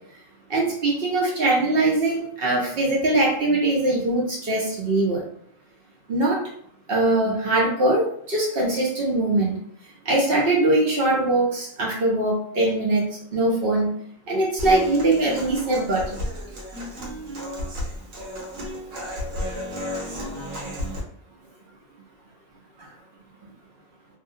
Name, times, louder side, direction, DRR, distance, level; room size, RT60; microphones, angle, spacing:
voice 1, 0.5-5.2 6.1-6.4 6.9-9.6 10.0-13.9 14.3-16.0, right 2 dB, 55° right, -4 dB, 0.7 m, -22 dB
Human voice / Acoustic guitar, 14.6-21.0, equal, 70° right, 1.1 m, -33 dB
2.6 x 2.0 x 2.6 m, 0.62 s
omnidirectional pair, 1.4 m